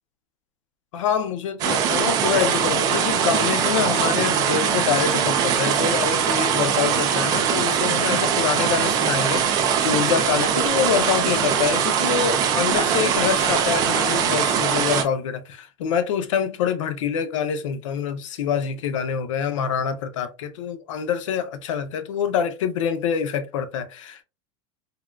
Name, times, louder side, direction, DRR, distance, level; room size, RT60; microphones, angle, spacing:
voice 1, 0.9-24.2, left 7 dB, 85° left, 0.6 m, -25 dB
sound 1, 1.6-15.0, right 8 dB, 25° right, 0.3 m, -21 dB
3.5 x 2.2 x 2.2 m
supercardioid pair, 165°, 16 cm